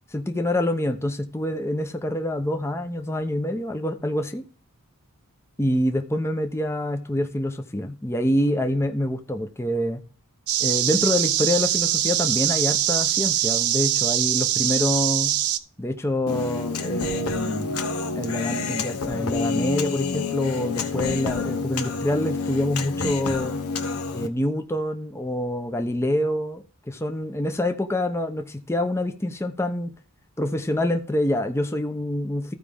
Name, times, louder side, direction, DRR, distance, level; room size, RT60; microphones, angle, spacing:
voice 1, 0.1-4.4 5.6-10.0 10.6-15.4 15.8-17.8 18.1-23.5 24.1-29.9 30.4-32.5, left 1 dB, 10° left, 0.7 m, -26 dB
sound 1, 10.5-15.6, right 12 dB, 80° right, 0.6 m, -23 dB
Human voice, 16.3-24.3, left 4 dB, 90° left, 1.1 m, -28 dB
14.5 x 5.0 x 3.5 m
head